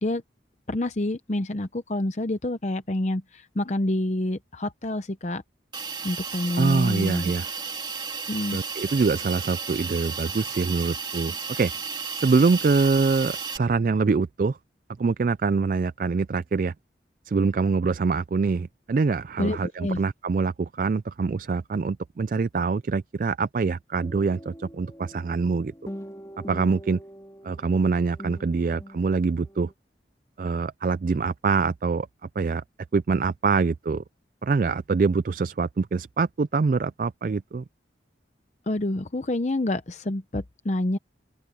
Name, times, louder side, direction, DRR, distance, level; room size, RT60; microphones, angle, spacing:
voice 1, 0.7-5.4 6.0-7.3 8.3-8.6 19.4-20.0 38.7-41.0, left 1 dB, 40° left, 0.7 m, -27 dB
Hiss, 5.7-13.6, right 5 dB, 25° right, 2.6 m, -33 dB
voice 2, 6.6-7.5 8.5-11.7 12.2-14.6 15.0-16.7 17.3-25.7 26.5-27.0 27.4-29.7 30.4-32.1 32.4-32.6 32.9-34.0 34.4-37.6, right 4 dB, 45° right, 0.3 m, -24 dB
sound 1, 24.0-29.7, equal, 15° left, 2.8 m, -43 dB
open air
head